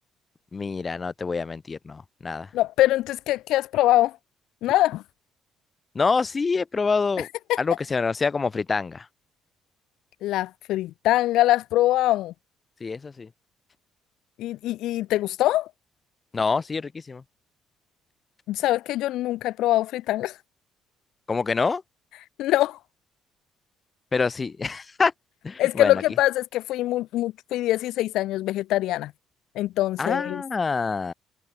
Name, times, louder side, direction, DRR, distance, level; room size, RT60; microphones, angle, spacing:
voice 1, 0.5-2.5 5.9-7.3 7.6-9.1 12.8-13.3 16.3-17.2 21.3-21.8 24.1-25.1 25.4-26.0 30.0-31.1, left 4 dB, 25° left, 2.0 m, -26 dB
voice 2, 2.5-4.2 4.6-5.0 7.2-7.6 10.2-12.3 14.4-15.7 18.5-20.4 22.4-22.8 25.6-29.1 29.5-30.4, left 15 dB, 80° left, 0.8 m, -23 dB
cardioid pair, 140°, 0 cm